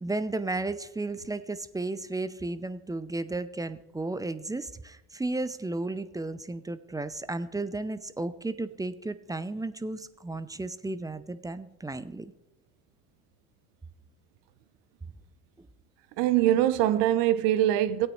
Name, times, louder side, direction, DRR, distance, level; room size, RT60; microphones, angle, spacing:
voice 1, 0.0-12.3, right 2 dB, 10° right, 0.5 m, -34 dB
voice 2, 16.2-18.1, right 12 dB, 65° right, 0.8 m, -23 dB
16.0 x 8.8 x 3.1 m
hypercardioid pair, 70°, 45 cm